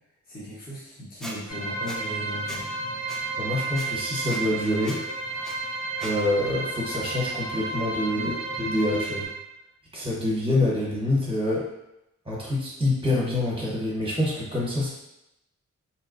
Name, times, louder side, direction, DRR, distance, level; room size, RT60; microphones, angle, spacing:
voice 1, 0.2-2.6 8.1-8.4, equal, 30° left, -8 dB, 0.8 m, -37 dB
Squeak, 1.2-1.4 1.9-2.0 2.5-2.6 3.1-3.2 3.8-3.9 4.3-4.4 4.8-5.0 5.4-5.6 6.0-6.1, equal, ahead, 0.4 m, -38 dB
sound 1, 1.5-9.3, right 3 dB, 75° left, 0.9 m, -32 dB
voice 2, 3.4-5.0 6.0-8.3 8.6-9.3 9.9-11.7 12.3-14.9, left 1 dB, 20° right, -5 dB, 0.9 m, -26 dB
2.8 x 2.1 x 2.4 m, 0.87 s
wide cardioid pair, 95°, 29 cm